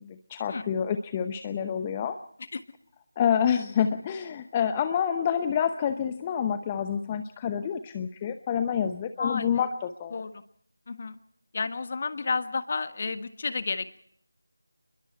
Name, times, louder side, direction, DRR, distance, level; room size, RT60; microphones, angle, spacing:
voice 1, 0.0-2.2 3.2-10.2, left 8 dB, 15° left, 9 dB, 0.8 m, -28 dB
voice 2, 9.2-9.7 10.1-10.4 10.9-11.2 11.5-14.0, left 4 dB, 35° left, 11 dB, 1.4 m, -31 dB
29.5 x 22.0 x 4.5 m, 0.66 s
figure-of-eight pair, 165°, 0 cm